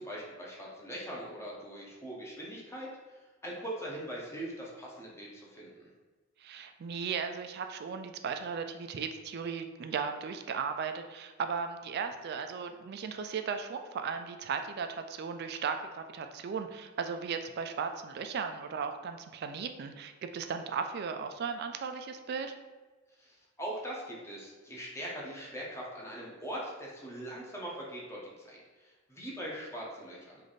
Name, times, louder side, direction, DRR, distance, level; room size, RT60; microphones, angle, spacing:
voice 1, 0.0-3.2 3.4-5.9 23.2-30.4, right 1 dB, 15° left, -4 dB, 0.7 m, -41 dB
voice 2, 6.4-22.6, right 6 dB, 50° right, 7 dB, 0.3 m, -36 dB
3.2 x 2.5 x 4.0 m, 1.3 s
head